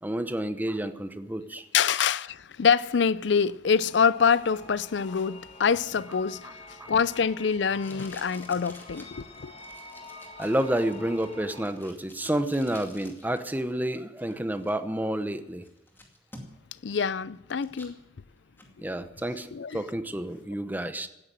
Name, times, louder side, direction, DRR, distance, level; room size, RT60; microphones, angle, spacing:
voice 1, 0.0-1.6 6.8-6.9 10.4-15.6 18.8-21.1, right 1 dB, 10° right, 0.9 m, -30 dB
voice 2, 1.7-9.5 16.8-17.9 19.5-19.8, left 6 dB, 70° left, 0.5 m, -25 dB
sound 1, 3.7-11.7, left 2 dB, 30° left, 1.9 m, -47 dB
Packing tape duct tape, 5.9-13.4 13.7-14.7 15.2-15.3 15.6-16.8 17.1-18.0 18.4-18.7, left 1 dB, 10° left, 2.3 m, -51 dB
16.5 x 9.7 x 7.7 m
head